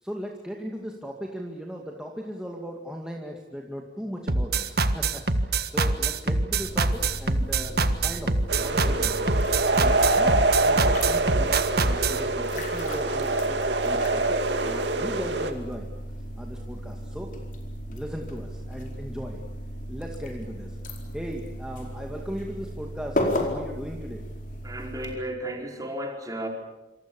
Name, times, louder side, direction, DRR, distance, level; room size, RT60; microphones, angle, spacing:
voice 1, 0.0-9.4 9.7-15.9 16.4-17.3 17.9-19.4 19.9-20.8 21.1-24.2, equal, 5° right, 0 dB, 2.2 m, -37 dB
sound 1, 4.3-12.2, right 3 dB, 60° right, 1.6 m, -24 dB
sound 2, 6.6-25.1, equal, 50° left, 4.6 m, -35 dB
sound 3, 8.5-15.5, right 2 dB, 80° right, 2.4 m, -25 dB
voice 2, 24.6-26.5, right 1 dB, 20° right, 2 dB, 4.6 m, -33 dB
26.5 x 26.5 x 7.2 m, 1.0 s
head